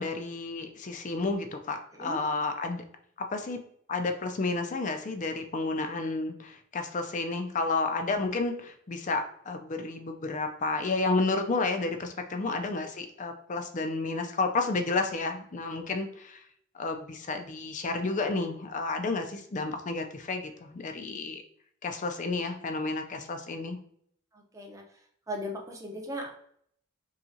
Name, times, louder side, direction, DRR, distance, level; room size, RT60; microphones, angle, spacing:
voice 1, 0.0-2.8 3.2-3.6 3.9-16.4 16.7-21.4 21.8-23.8, left 3 dB, 40° left, 6 dB, 0.5 m, -31 dB
voice 2, 24.3-24.8 25.3-26.3, equal, 15° right, 0 dB, 0.7 m, -38 dB
5.6 x 2.4 x 2.7 m, 0.66 s
head